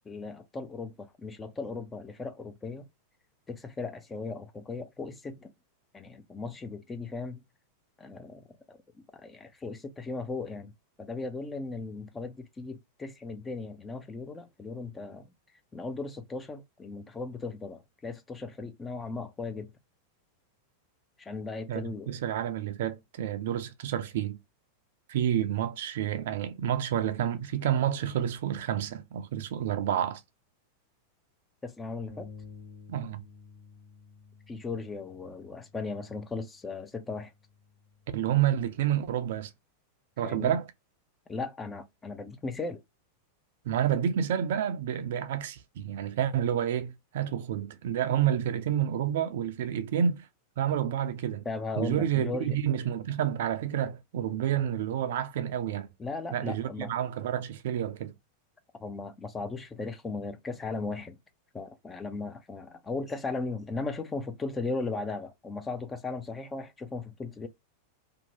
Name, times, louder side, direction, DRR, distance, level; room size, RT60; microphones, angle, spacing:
voice 1, 0.0-2.9 3.5-5.5 5.9-7.4 8.0-8.8 9.1-10.7 11.0-15.3 15.7-19.7 21.2-22.1 31.6-32.3 34.5-37.3 40.2-40.6 41.3-42.8 51.5-52.6 56.0-56.9 58.8-61.2 61.5-67.5, left 3 dB, 15° left, 0.4 m, -37 dB
voice 2, 21.7-24.4 25.1-30.2 32.9-33.2 38.1-39.5 40.2-40.7 43.6-50.3 50.6-51.4 51.8-55.9 56.3-58.1, right 10 dB, 55° right, 0.4 m, -29 dB
sound 1, 32.1-38.3, left 5 dB, 50° left, 1.1 m, -52 dB
2.7 x 2.1 x 2.8 m
figure-of-eight pair, 90°, 0 cm